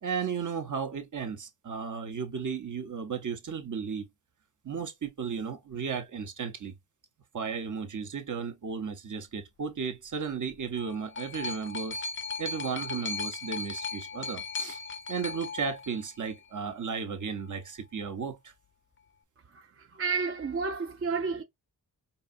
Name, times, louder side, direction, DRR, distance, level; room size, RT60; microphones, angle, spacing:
voice 1, 0.0-4.1 4.6-6.7 7.3-12.0 12.4-14.8 15.1-18.5, right 6 dB, 55° right, 0.9 m, -34 dB
sound 1, 10.5-16.5 17.4-17.5, left 4 dB, 35° left, 0.4 m, -37 dB
voice 2, 19.5-21.4, right 4 dB, 35° right, 0.5 m, -31 dB
4.7 x 2.7 x 2.5 m
wide cardioid pair, 90°, 37 cm